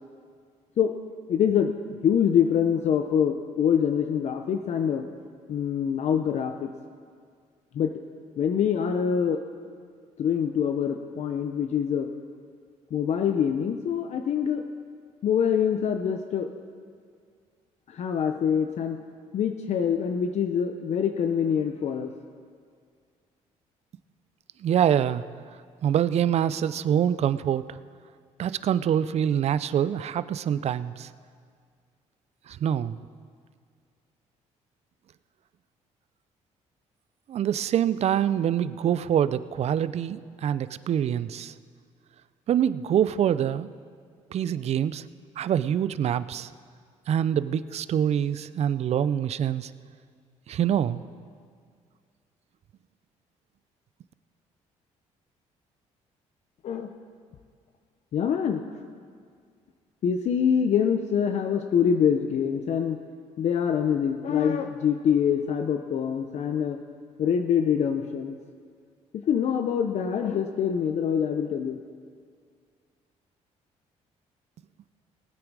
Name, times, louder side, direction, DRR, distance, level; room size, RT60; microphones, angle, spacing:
voice 1, 1.3-5.1 5.5-6.7 7.7-7.9 8.4-9.4 10.2-12.1 12.9-14.6 15.2-16.5 17.9-19.0 19.3-22.1 56.6-56.9 58.1-58.7 60.0-63.0 63.4-66.8 67.2-68.4 69.1-71.8, left 8 dB, 60° left, 6 dB, 0.7 m, -25 dB
voice 2, 24.6-25.2 25.8-27.8 28.4-31.1 32.5-33.0 37.3-41.5 42.5-43.7 44.3-45.0 45.4-46.5 47.1-49.7 50.5-51.0, right 9 dB, 55° right, 15 dB, 0.5 m, -25 dB
19.0 x 8.8 x 4.8 m, 2.1 s
cardioid pair, 90°, 13 cm